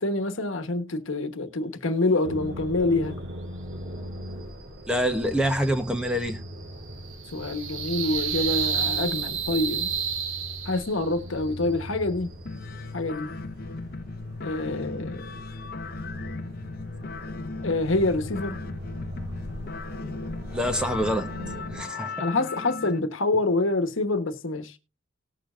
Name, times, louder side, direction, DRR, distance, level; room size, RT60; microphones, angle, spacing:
voice 1, 0.0-3.2 7.3-9.9 10.6-12.3 12.9-13.3 14.4-15.3 17.6-18.6 22.2-24.8, left 2 dB, 70° left, 1.2 m, -26 dB
sound 1, 2.2-21.8, equal, 55° right, 2.1 m, -40 dB
voice 2, 4.9-6.4 20.5-21.3 21.7-22.2, equal, 5° right, 1.0 m, -26 dB
sound 2, 5.2-11.1, right 7 dB, 70° right, 1.2 m, -31 dB
sound 3, 12.5-23.0, left 3 dB, 45° left, 0.6 m, -37 dB
18.5 x 6.9 x 2.5 m
head